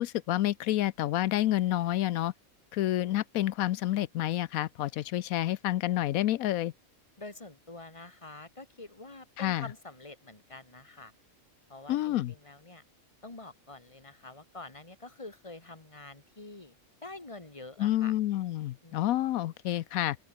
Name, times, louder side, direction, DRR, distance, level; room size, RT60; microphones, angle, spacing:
voice 1, 0.0-2.3 2.7-6.7 9.4-9.7 11.9-12.3 17.8-20.2, left 14 dB, 85° left, 1.1 m, -29 dB
voice 2, 7.2-11.1 11.7-12.8 13.2-16.7 17.0-18.1 18.8-19.0, left 2 dB, 20° left, 2.4 m, -47 dB
open air
omnidirectional pair, 1.5 m